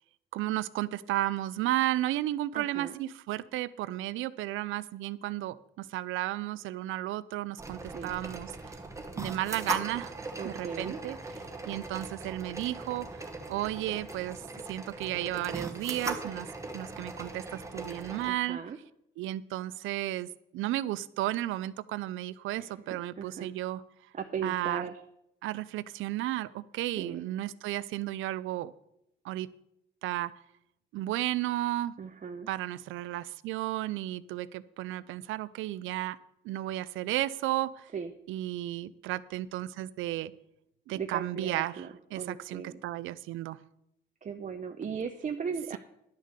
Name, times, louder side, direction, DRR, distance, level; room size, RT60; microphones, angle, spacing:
voice 1, 0.3-8.6 9.2-10.1 10.4-11.2 11.7-14.4 14.7-16.5 16.7-18.6 19.2-23.8 24.4-24.8 25.4-28.7 29.2-29.5 30.0-30.3 30.9-31.9 32.5-36.2 36.4-37.9 38.3-40.3 40.9-43.6, right 15 dB, 85° right, 18 dB, 0.5 m, -33 dB
voice 2, 2.5-3.0 7.9-8.1 10.4-11.0 18.2-18.8 22.6-22.7 23.2-23.5 24.1-25.0 27.0-27.2 32.0-32.5 37.9-38.1 41.0-41.9 42.2-42.8 44.2-45.8, right 6 dB, 40° right, 5 dB, 0.7 m, -37 dB
sound 1, 7.6-18.3, right 2 dB, 15° right, 1.4 m, -39 dB
11.0 x 6.6 x 6.6 m, 0.79 s
cardioid pair, 90°, 20 cm